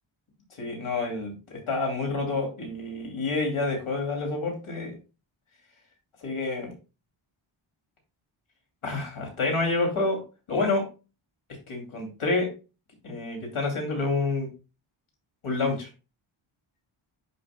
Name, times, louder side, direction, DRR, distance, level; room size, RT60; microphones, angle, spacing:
voice 1, 0.6-4.9 6.2-6.7 8.8-10.2 10.5-10.8 11.7-12.5 13.0-14.5 15.4-15.9, left 3 dB, 75° left, 1 dB, 2.8 m, -28 dB
11.0 x 5.4 x 2.2 m, 0.31 s
wide cardioid pair, 125°, 49 cm